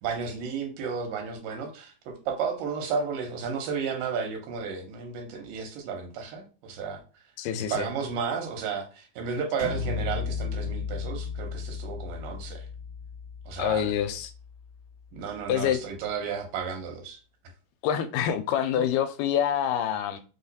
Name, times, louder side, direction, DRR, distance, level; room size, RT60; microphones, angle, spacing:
voice 1, 0.0-7.0 7.7-12.7 13.5-13.9 15.1-17.2 18.8-18.9, right 6 dB, 85° right, 2.7 m, -33 dB
voice 2, 7.4-7.9 13.6-14.3 15.5-15.8 17.8-20.2, left 9 dB, 85° left, 2.1 m, -26 dB
sound 1, 9.6-15.2, left 5 dB, 60° right, 0.8 m, -35 dB
5.5 x 2.4 x 4.0 m
omnidirectional pair, 3.8 m